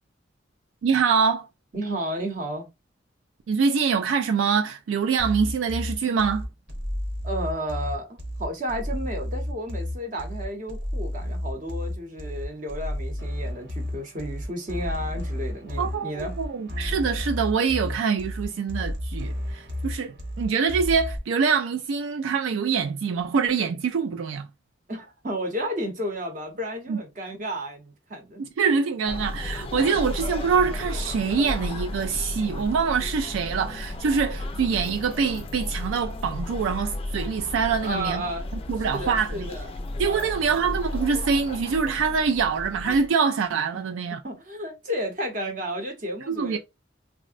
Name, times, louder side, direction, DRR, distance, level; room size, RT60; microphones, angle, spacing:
voice 1, 0.8-1.5 3.5-6.5 15.8-24.5 26.9-27.0 28.4-38.2 38.7-39.5 40.0-44.2 46.3-46.6, right 5 dB, 80° right, 0.3 m, -25 dB
voice 2, 1.7-2.7 7.2-16.3 24.9-28.4 37.8-38.6 38.9-39.7 40.0-40.3 43.7-43.9 44.2-46.6, equal, 40° right, 0.8 m, -32 dB
sound 1, 5.2-21.2, left 1 dB, 65° right, 1.1 m, -32 dB
sound 2, 29.1-43.1, left 2 dB, 30° left, 0.3 m, -34 dB
3.6 x 2.1 x 2.4 m
head